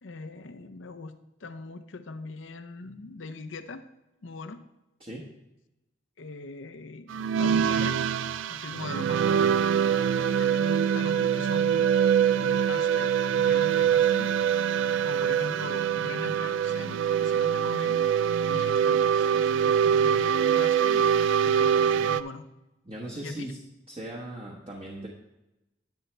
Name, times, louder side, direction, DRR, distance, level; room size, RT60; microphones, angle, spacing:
voice 1, 0.0-3.8 4.2-4.6 6.2-8.1 8.5-9.6 10.3-11.9 12.3-14.3 15.0-18.0 18.5-22.4 23.2-23.5, left 3 dB, 70° left, 9 dB, 0.7 m, -41 dB
sound 1, 7.1-22.2, right 8 dB, 70° right, 0.3 m, -24 dB
voice 2, 10.0-10.4 22.8-23.6 23.9-25.1, right 1 dB, 30° right, -1 dB, 1.1 m, -39 dB
10.5 x 8.1 x 3.3 m, 0.95 s
head